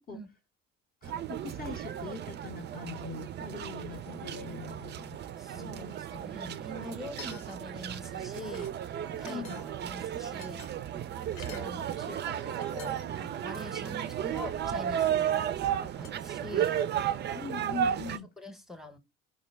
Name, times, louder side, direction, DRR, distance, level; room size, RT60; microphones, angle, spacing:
voice 1, 1.0-5.2 5.5-6.6 9.3-9.6 17.3-18.3, left 5 dB, 25° left, 0.6 m, -42 dB
sound 1, 1.0-18.2, right 10 dB, 35° right, 0.4 m, -34 dB
voice 2, 5.4-8.7 9.2-10.6 11.4-16.8 18.1-19.0, left 1 dB, ahead, 0.9 m, -44 dB
sound 2, 7.1-7.8 8.1-8.8 9.2-9.9 10.4-11.7 12.3-12.4 12.6-13.2 13.6-13.7 15.0-15.4 16.0-16.1, left 7 dB, 75° left, 0.8 m, -49 dB
3.8 x 2.1 x 3.3 m
hypercardioid pair, 70°, 33 cm